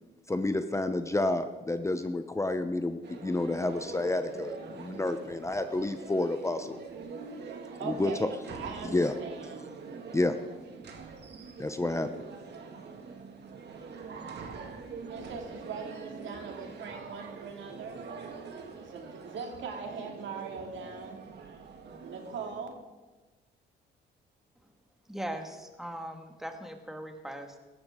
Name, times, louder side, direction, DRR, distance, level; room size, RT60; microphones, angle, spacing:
voice 1, 0.3-6.8 7.8-8.3 8.9-9.1 10.1-10.4 11.6-12.1, left 2 dB, 15° left, 9 dB, 0.8 m, -29 dB
sound 1, 3.0-22.7, right 4 dB, 60° right, 2.0 m, -45 dB
voice 2, 7.8-9.6 15.1-18.0 18.8-21.2 22.0-22.8, right 5 dB, 75° right, 3 dB, 2.4 m, -40 dB
voice 3, 25.1-27.6, right 1 dB, ahead, 4 dB, 1.8 m, -39 dB
17.0 x 14.0 x 3.7 m, 1.2 s
cardioid pair, 90°, 20 cm